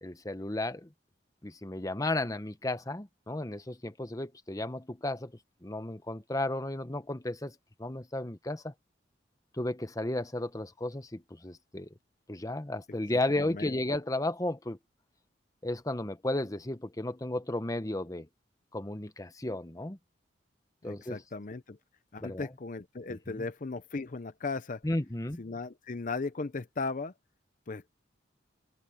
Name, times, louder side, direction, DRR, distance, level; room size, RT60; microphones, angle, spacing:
voice 1, 0.0-0.9 1.4-5.3 5.6-8.7 9.6-11.9 12.3-14.8 15.6-18.3 18.7-20.0 20.8-21.2 22.2-22.5 23.1-23.5 24.8-25.4, left 1 dB, 20° left, 0.9 m, -34 dB
voice 2, 13.4-13.8 20.8-21.8 22.1-24.8 25.4-27.1 27.7-27.8, left 3 dB, 45° left, 0.6 m, -37 dB
open air
head